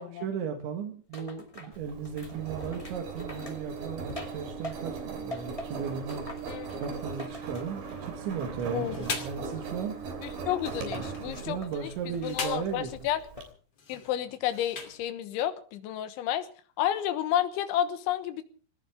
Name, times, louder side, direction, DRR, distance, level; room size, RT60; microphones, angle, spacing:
voice 1, 0.0-6.3 6.7-10.0 10.7-12.9, right 7 dB, 75° right, 2 dB, 4.0 m, -36 dB
sound 1, 1.1-5.0 5.3-8.1 8.4-10.0 10.6-11.2 11.6-12.3 12.6-13.5 13.9-14.3, left 1 dB, 60° left, 0.3 m, -45 dB
Engine, 1.7-13.4, right 5 dB, 55° right, 4.6 m, -39 dB
sound 2, 8.6-9.5 10.5-11.3 12.0-12.8 13.7-15.1, left 5 dB, 40° left, 3.1 m, -39 dB
voice 2, 10.2-13.2 13.9-16.5 16.8-18.4, left 11 dB, 80° left, 10 dB, 3.5 m, -31 dB
20.5 x 18.5 x 3.6 m, 0.41 s
omnidirectional pair, 5.5 m